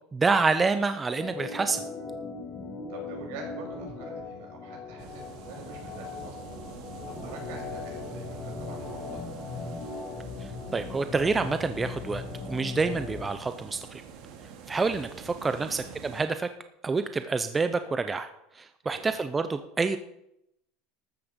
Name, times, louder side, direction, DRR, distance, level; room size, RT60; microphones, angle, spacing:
voice 1, 0.1-1.8 10.4-14.0 14.7-16.5 16.8-18.3 18.5-20.0, right 4 dB, 15° right, 10 dB, 0.5 m, -28 dB
Organ, 1.1-13.3, left 4 dB, 25° left, 1.7 m, -39 dB
voice 2, 2.9-6.4 7.0-9.2 15.5-16.0 18.8-19.1, right 4 dB, 70° right, 2 dB, 5.9 m, -46 dB
sound 1, 5.0-16.2, right 6 dB, 55° right, 2.3 m, -45 dB
13.0 x 8.8 x 6.8 m, 0.81 s
cardioid pair, 170°, 0 cm